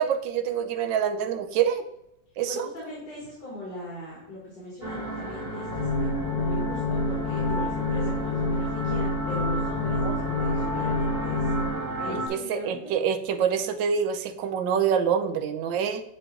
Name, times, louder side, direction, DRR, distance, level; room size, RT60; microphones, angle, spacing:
voice 1, 0.0-1.8 2.4-2.7 10.0-10.1 12.3-16.0, right 7 dB, 80° right, 7 dB, 1.4 m, -26 dB
voice 2, 2.4-6.1 6.3-11.5 12.0-12.9, left 1 dB, 65° left, -5 dB, 2.6 m, -39 dB
sound 1, 4.8-12.3, equal, 35° right, 1.6 m, -33 dB
sound 2, 5.7-11.7, left 2 dB, 80° left, 1.6 m, -28 dB
9.8 x 3.3 x 3.7 m, 0.79 s
omnidirectional pair, 2.0 m